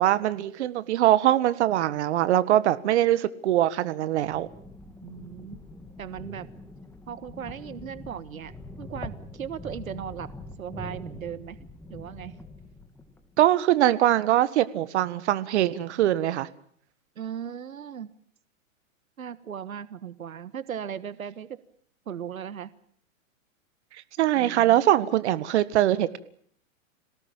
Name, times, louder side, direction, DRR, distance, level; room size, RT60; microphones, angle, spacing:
voice 1, 0.0-4.5 13.4-16.5 24.2-26.2, right 13 dB, 55° right, 15 dB, 1.7 m, -22 dB
sound 1, 4.1-13.3, left 1 dB, 5° left, 2.0 m, -43 dB
voice 2, 5.0-5.6 6.0-6.5 7.1-8.5 8.8-10.3 10.6-11.6 11.9-12.4 17.1-18.1 19.2-21.6 22.1-22.7 24.3-24.8, right 8 dB, 90° right, 16 dB, 1.5 m, -37 dB
27.0 x 18.0 x 8.9 m, 0.62 s
hypercardioid pair, 135°, 40 cm